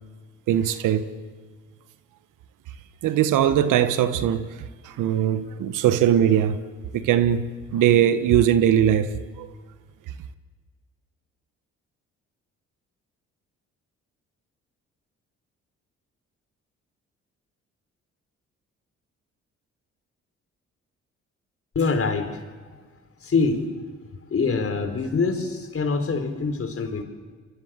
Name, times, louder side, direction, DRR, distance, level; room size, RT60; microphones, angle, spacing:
voice 1, 0.5-1.1 3.0-6.6 6.9-9.5, right 10 dB, 75° right, 1.5 m, -21 dB
voice 2, 21.7-22.8 23.2-23.7 24.3-27.0, left 4 dB, 45° left, 4.4 m, -25 dB
29.5 x 23.0 x 7.7 m
supercardioid pair, 60°, 32 cm